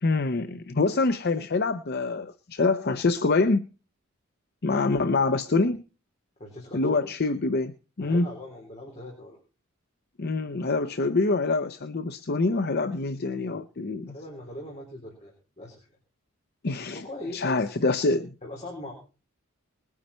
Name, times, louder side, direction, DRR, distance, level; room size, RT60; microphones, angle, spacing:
voice 1, 0.0-3.7 4.6-5.8 6.7-8.3 10.2-14.1 16.6-17.0 17.3-18.3, left 3 dB, 50° left, 11 dB, 0.6 m, -25 dB
voice 2, 5.0-5.3 6.4-7.1 8.0-9.4 14.0-15.8 16.9-17.7 18.4-18.9, left 1 dB, 30° left, -1 dB, 4.0 m, -40 dB
20.5 x 9.5 x 4.3 m, 0.35 s
head